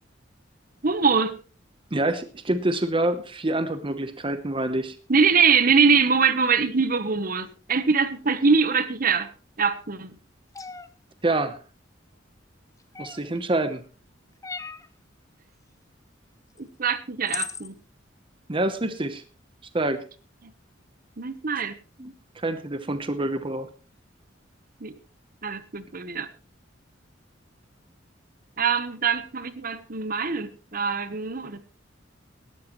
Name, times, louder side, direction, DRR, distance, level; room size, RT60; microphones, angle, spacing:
voice 1, 0.8-1.4 5.1-9.3 9.6-10.1 16.6-17.7 21.2-21.7 24.8-24.9 25.4-26.3 28.6-31.6, right 5 dB, 50° right, 12 dB, 1.1 m, -23 dB
voice 2, 1.9-5.0 11.2-11.6 13.0-13.8 18.5-19.2 19.7-20.1 22.0-23.7, right 2 dB, 25° right, 10 dB, 0.9 m, -26 dB
sound 1, 10.5-10.9 12.9-13.4 14.4-14.9 16.6-16.7 17.3-17.7, left 5 dB, 15° left, 0.8 m, -35 dB
18.0 x 13.0 x 3.1 m, 0.35 s
head